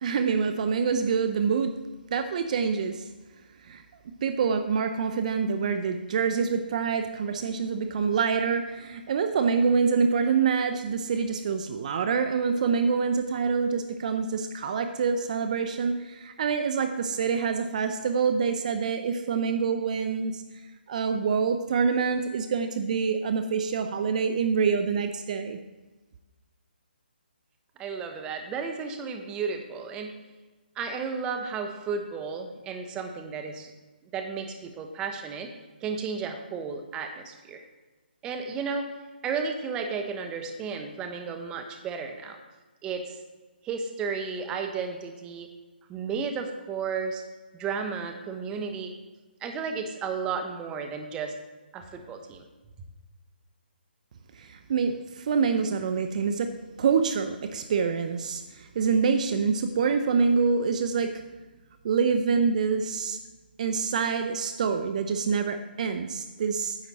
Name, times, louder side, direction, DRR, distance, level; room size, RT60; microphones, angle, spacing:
voice 1, 0.0-1.7 2.1-3.0 3.6-3.8 4.2-20.4 20.9-25.6 54.4-56.5 56.8-61.2 61.8-63.2 63.6-66.8, right 5 dB, 45° right, 7 dB, 0.6 m, -26 dB
voice 2, 27.8-30.2 30.8-33.7 34.1-35.5 35.8-37.6 38.2-38.9 39.2-42.4 42.8-43.2 43.6-45.5 45.9-47.2 47.5-48.9 49.4-51.3 51.7-52.5, right 5 dB, 15° right, 5 dB, 0.8 m, -33 dB
10.0 x 7.4 x 4.1 m, 1.2 s
hypercardioid pair, 155°, 6 cm